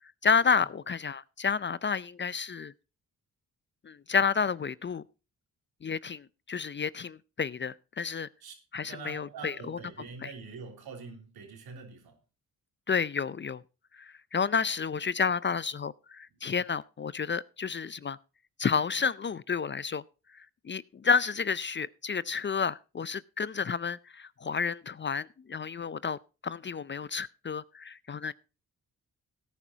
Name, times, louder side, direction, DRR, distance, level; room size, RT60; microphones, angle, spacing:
voice 1, 0.2-2.7 3.8-5.0 5.8-8.3 8.7-9.8 10.2-10.3 12.9-13.6 14.0-18.2 18.6-20.0 20.3-28.3, left 6 dB, 30° left, 0.5 m, -30 dB
voice 2, 8.4-12.2, right 5 dB, 80° right, 3.3 m, -45 dB
17.0 x 10.0 x 2.8 m
supercardioid pair, 50°, 37 cm